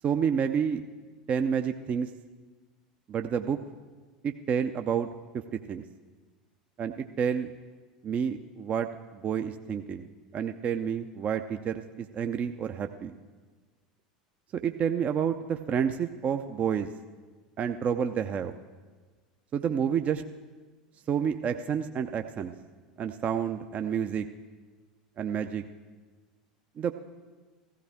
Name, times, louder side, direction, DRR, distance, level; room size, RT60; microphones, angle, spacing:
voice 1, 0.0-0.8 1.3-2.1 3.1-3.6 4.2-5.1 5.7-5.8 6.8-7.5 8.0-10.1 10.3-13.1 14.5-16.9 17.6-18.5 19.5-20.2 21.1-22.5 23.0-24.3 25.2-25.6 26.8-26.9, right 7 dB, 35° right, 7 dB, 0.6 m, -29 dB
15.5 x 15.0 x 3.5 m, 1.4 s
figure-of-eight pair, 80°, 4 cm